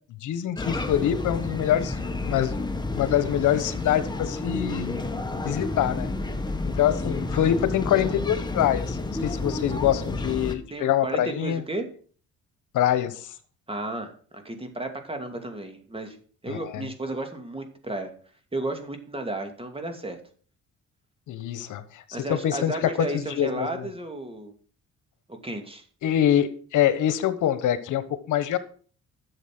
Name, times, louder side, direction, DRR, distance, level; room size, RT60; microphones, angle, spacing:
voice 1, 0.2-2.0 2.2-2.6 3.0-5.1 5.4-6.1 6.7-11.6 12.7-13.3 16.5-16.9 21.3-22.0 22.3-23.9 26.0-28.6, left 11 dB, 80° left, 13 dB, 1.2 m, -25 dB
sound 1, 0.6-10.5, left 2 dB, 15° left, 1.6 m, -30 dB
voice 2, 10.7-11.9 13.7-16.2 16.4-18.1 18.5-20.2 22.1-24.5 25.4-25.9, right 2 dB, 20° right, 5 dB, 2.6 m, -33 dB
11.0 x 7.4 x 6.1 m, 0.44 s
cardioid pair, 90°, 30 cm